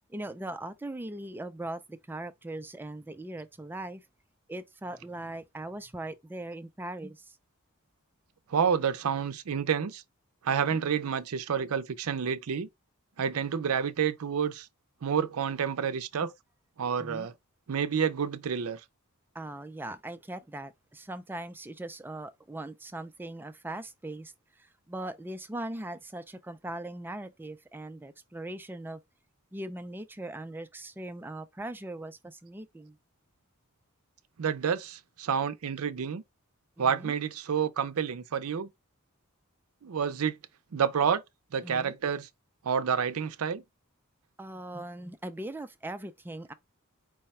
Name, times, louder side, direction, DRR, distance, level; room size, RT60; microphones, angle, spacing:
voice 1, 0.1-4.0 4.5-7.4 10.5-10.8 17.0-17.3 19.3-24.3 24.6-29.0 29.5-33.0 36.8-37.1 41.6-41.9 44.4-46.5, right 1 dB, 10° right, 0.3 m, -40 dB
voice 2, 8.5-10.0 10.4-12.7 13.2-14.7 15.0-16.3 16.8-17.3 17.7-18.8 34.4-36.2 36.8-38.7 39.8-40.4 40.7-41.2 41.5-42.3 42.6-43.6, right 7 dB, 70° right, 0.5 m, -29 dB
4.7 x 2.2 x 4.1 m
head